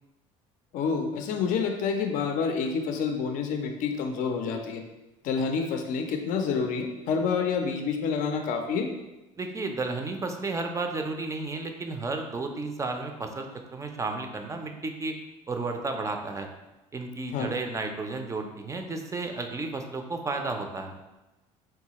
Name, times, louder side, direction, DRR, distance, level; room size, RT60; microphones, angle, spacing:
voice 1, 0.7-4.8 5.2-8.9 17.3-17.5, left 5 dB, 55° left, 5 dB, 0.5 m, -28 dB
voice 2, 9.4-15.1 15.5-16.5 16.9-20.9, right 3 dB, 20° right, 4 dB, 0.4 m, -32 dB
3.9 x 2.3 x 2.8 m, 1.0 s
supercardioid pair, 80°, 16 cm